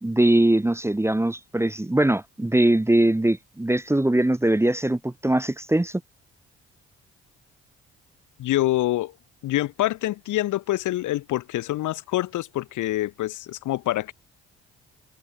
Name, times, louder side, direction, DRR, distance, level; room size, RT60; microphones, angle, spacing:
voice 1, 0.0-6.0, right 1 dB, 10° right, 0.7 m, -21 dB
voice 2, 8.4-9.1 9.4-14.1, left 15 dB, 70° left, 0.8 m, -26 dB
hypercardioid pair, 50°, 32 cm